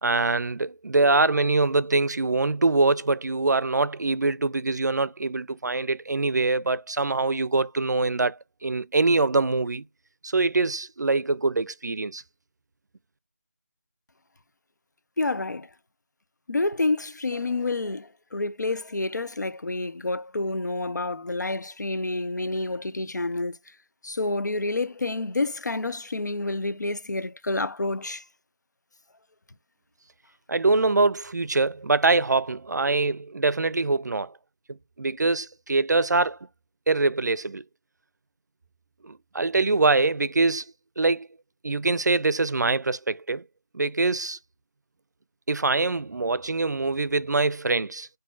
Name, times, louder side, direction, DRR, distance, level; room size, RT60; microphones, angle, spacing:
voice 1, 0.0-9.8 10.2-12.2 30.5-34.3 34.7-36.4 36.9-37.6 39.0-40.7 41.0-41.3 41.6-43.4 43.7-44.4 45.5-48.1, right 3 dB, 85° right, 0.4 m, -24 dB
voice 2, 15.2-15.7 16.5-23.6 24.0-28.2, left 2 dB, 85° left, 0.6 m, -28 dB
7.5 x 2.7 x 2.3 m
figure-of-eight pair, 170°, 9 cm